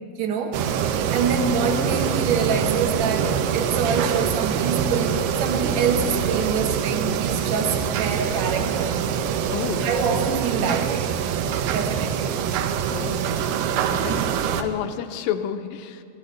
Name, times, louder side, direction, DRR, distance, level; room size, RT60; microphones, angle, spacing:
voice 1, 0.2-0.6 1.1-9.0 9.8-11.2 11.7-12.4 14.1-14.4, right 5 dB, 65° right, 4 dB, 1.9 m, -26 dB
sound 1, 0.5-14.6, right 8 dB, 85° right, 2.7 m, -24 dB
voice 2, 9.5-9.9 12.9-13.2 13.9-14.2 14.6-16.0, left 10 dB, 80° left, 8 dB, 2.3 m, -29 dB
25.0 x 16.5 x 3.2 m, 2.3 s
omnidirectional pair, 4.5 m